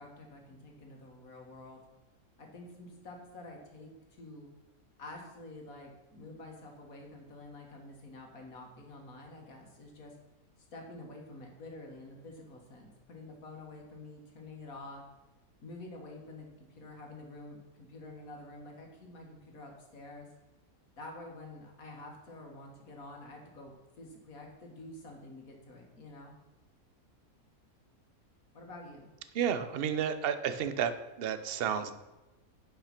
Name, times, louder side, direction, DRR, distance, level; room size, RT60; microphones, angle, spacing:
voice 1, 0.0-1.8 2.4-4.5 5.0-10.1 10.7-15.0 15.6-20.3 21.0-26.3 28.5-29.1, left 2 dB, 70° left, 1 dB, 2.1 m, -48 dB
voice 2, 29.3-31.9, right 8 dB, 50° right, 10 dB, 0.7 m, -31 dB
8.8 x 5.7 x 5.9 m, 1.1 s
omnidirectional pair, 1.6 m